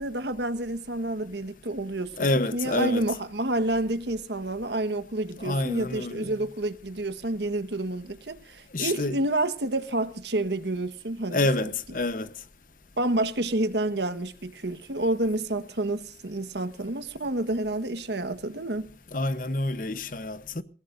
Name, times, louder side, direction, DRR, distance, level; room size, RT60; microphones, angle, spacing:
voice 1, 0.0-2.1 2.5-11.7 13.0-18.9, right 2 dB, 70° right, 1.4 m, -29 dB
voice 2, 2.2-3.1 5.4-6.4 8.7-9.2 11.3-12.3 19.1-20.6, left 2 dB, 45° left, 1.0 m, -28 dB
27.5 x 17.0 x 2.6 m
head